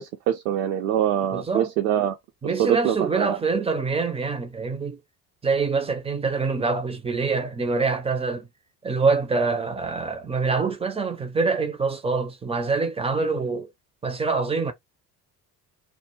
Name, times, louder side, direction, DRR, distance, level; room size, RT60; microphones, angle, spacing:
voice 1, 0.0-2.2 2.4-3.4, right 10 dB, 65° right, 0.6 m, -24 dB
voice 2, 1.3-1.7 2.4-5.0 5.4-8.5 8.8-13.7 14.0-14.7, right 4 dB, 15° right, 0.5 m, -25 dB
2.2 x 2.2 x 3.0 m
figure-of-eight pair, 55°, 48 cm